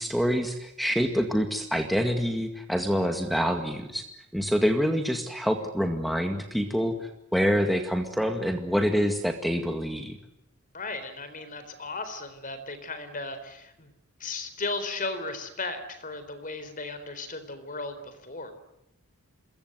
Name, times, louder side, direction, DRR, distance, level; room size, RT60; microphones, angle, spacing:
voice 1, 0.0-4.1 4.3-10.2, equal, ahead, 5 dB, 2.0 m, -26 dB
voice 2, 10.7-13.9 14.2-18.5, left 3 dB, 35° left, 10 dB, 4.0 m, -36 dB
27.5 x 23.0 x 8.1 m, 0.86 s
head